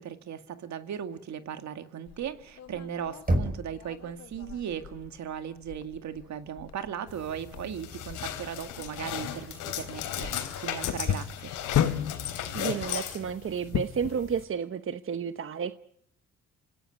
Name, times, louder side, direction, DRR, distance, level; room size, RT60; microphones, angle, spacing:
voice 1, 0.0-11.5, right 9 dB, 65° right, 8 dB, 2.1 m, -37 dB
sound 1, 2.1-14.2, left 10 dB, 60° left, 1.2 m, -36 dB
Knock, 3.3-4.2, right 1 dB, 30° right, 5.0 m, -28 dB
sound 2, 7.1-14.4, left 10 dB, 90° left, 3.6 m, -36 dB
voice 2, 12.5-15.7, right 7 dB, 45° right, 11 dB, 1.0 m, -31 dB
26.5 x 17.0 x 9.7 m, 0.70 s
cardioid pair, 90°, 30 cm